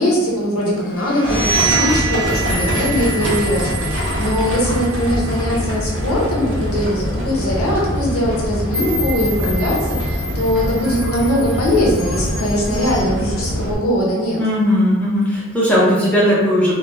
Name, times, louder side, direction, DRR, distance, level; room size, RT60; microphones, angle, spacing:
voice 1, 0.0-14.4, equal, 85° left, -3 dB, 0.7 m, -20 dB
sound 1, 0.9-6.6, right 6 dB, 45° left, 0.6 m, -26 dB
Livestock farm animals working animals, 1.2-13.7, equal, 60° right, 0.5 m, -23 dB
sound 2, 2.2-7.3 7.8-8.0 8.7-13.0, left 1 dB, 10° right, 0.8 m, -32 dB
voice 2, 14.4-16.7, equal, 5° left, -7 dB, 0.4 m, -16 dB
2.7 x 2.0 x 2.2 m, 1.2 s
head